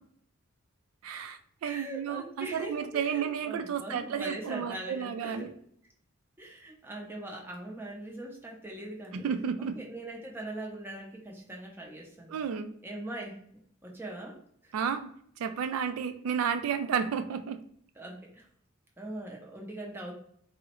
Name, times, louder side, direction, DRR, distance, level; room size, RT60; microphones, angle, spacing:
voice 1, 1.0-5.5 9.1-9.8 12.3-12.7 14.7-15.1 15.4-17.6, right 7 dB, 85° right, 9 dB, 0.3 m, -32 dB
voice 2, 1.6-5.5 6.4-9.3 9.6-12.4 12.8-13.4 13.8-14.7 18.0-18.5 19.0-20.1, right 1 dB, 10° right, 0 dB, 0.5 m, -41 dB
3.6 x 2.0 x 2.9 m, 0.63 s
head